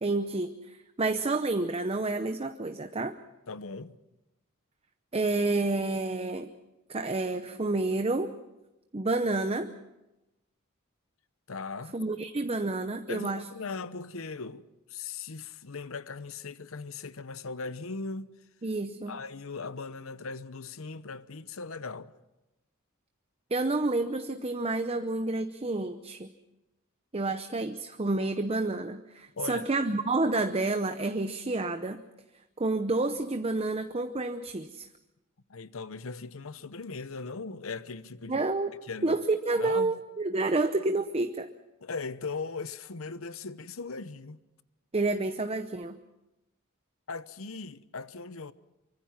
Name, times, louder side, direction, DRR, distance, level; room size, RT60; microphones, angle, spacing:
voice 1, 0.0-3.1 5.1-6.5 6.9-8.4 8.9-9.8 11.9-13.5 18.6-19.1 23.5-26.3 27.1-32.0 32.6-34.9 38.3-38.7 39.0-41.5 44.9-46.0, right 2 dB, 30° right, 0.7 m, -29 dB
voice 2, 3.5-4.0 11.5-12.0 13.1-14.6 14.9-18.3 19.1-22.1 29.4-29.7 35.5-38.4 38.8-39.2 39.6-40.0 41.8-44.4 47.1-48.5, left 4 dB, 70° left, 0.9 m, -39 dB
24.5 x 24.0 x 5.9 m
head